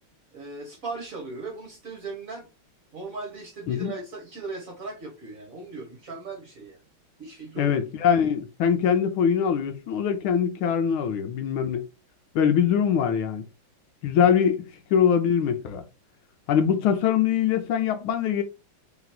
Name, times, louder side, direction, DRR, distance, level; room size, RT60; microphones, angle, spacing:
voice 1, 0.3-2.5 2.9-6.8 7.2-7.8, right 3 dB, 50° right, 1.2 m, -38 dB
voice 2, 7.6-11.8 12.3-13.4 14.0-15.8 16.5-18.4, left 8 dB, 75° left, 1.5 m, -23 dB
3.5 x 3.0 x 4.0 m
omnidirectional pair, 2.3 m